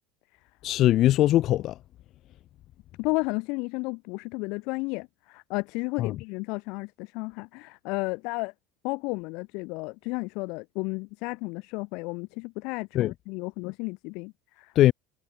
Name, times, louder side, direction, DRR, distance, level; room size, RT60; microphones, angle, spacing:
voice 1, 0.6-1.8 6.0-6.1 12.9-13.1 14.7-14.9, left 14 dB, 55° left, 0.9 m, -21 dB
voice 2, 3.0-8.5 8.8-14.7, left 28 dB, 70° left, 7.5 m, -33 dB
supercardioid pair, 110°, 0 cm